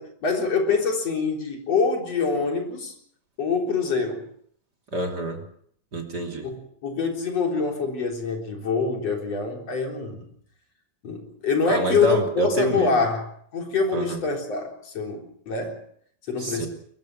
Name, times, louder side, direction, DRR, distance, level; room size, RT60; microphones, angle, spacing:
voice 1, 0.0-2.9 3.4-4.3 6.4-10.3 11.0-13.2 13.5-15.8 16.3-16.7, left 4 dB, 45° left, 2 dB, 4.8 m, -25 dB
voice 2, 4.9-5.4 5.9-6.5 11.7-13.0 13.9-14.2 16.4-16.7, right 1 dB, 30° right, 3 dB, 3.2 m, -27 dB
23.0 x 21.5 x 6.5 m, 0.64 s
omnidirectional pair, 4.0 m